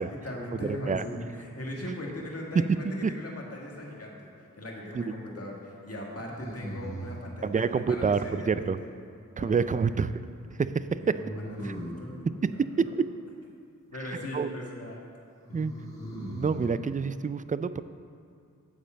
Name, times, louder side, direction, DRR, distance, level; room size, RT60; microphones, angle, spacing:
voice 1, 0.0-8.9 9.4-9.9 11.0-12.2 12.8-13.0 13.9-15.1, left 1 dB, 45° left, -2 dB, 1.8 m, -39 dB
voice 2, 0.6-1.0 3.0-3.1 4.9-5.0 7.4-8.8 9.4-10.2 10.6-11.1 11.6-11.8 12.2-12.9 14.3-14.5 15.5-15.7 16.3-17.8, right 5 dB, 25° right, 13 dB, 0.3 m, -27 dB
sound 1, 3.6-4.3 6.3-7.3 11.1-12.1 15.4-16.7, right 1 dB, 10° left, 2.7 m, -39 dB
8.8 x 5.2 x 7.4 m, 2.4 s
cardioid pair, 55°, 33 cm